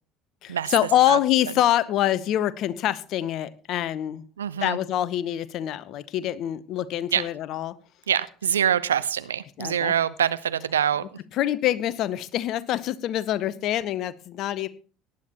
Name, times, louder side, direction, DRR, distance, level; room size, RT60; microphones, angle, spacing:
voice 1, 0.4-4.2 4.6-7.7 9.6-9.9 11.4-14.7, left 12 dB, 50° left, 17 dB, 0.8 m, -25 dB
voice 2, 4.4-4.8 7.1-7.3 8.1-11.1, right 9 dB, 80° right, 15 dB, 0.5 m, -25 dB
18.0 x 10.0 x 2.9 m, 0.40 s
figure-of-eight pair, 60°, 0 cm